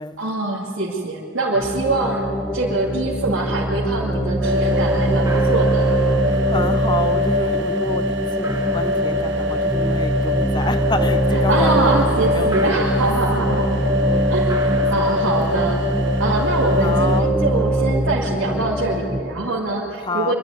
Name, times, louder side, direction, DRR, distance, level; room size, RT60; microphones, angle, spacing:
voice 1, 0.2-2.3 2.5-5.9 11.3-13.8 14.3-15.8 16.2-20.3, right 2 dB, 85° right, -4 dB, 2.5 m, -24 dB
sound 1, 1.5-19.2, right 1 dB, ahead, 1.3 m, -22 dB
sound 2, 2.6-2.7 3.0-3.5 3.8-4.4 4.7-4.8 5.1-15.8, right 2 dB, 15° right, 1.4 m, -40 dB
sound 3, 4.4-17.2, left 1 dB, 60° right, 1.0 m, -24 dB
voice 2, 6.3-13.1 13.4-13.5 16.8-17.3 20.0-20.3, left 2 dB, 20° left, 11 dB, 0.7 m, -28 dB
25.0 x 12.0 x 9.8 m, 2.5 s
head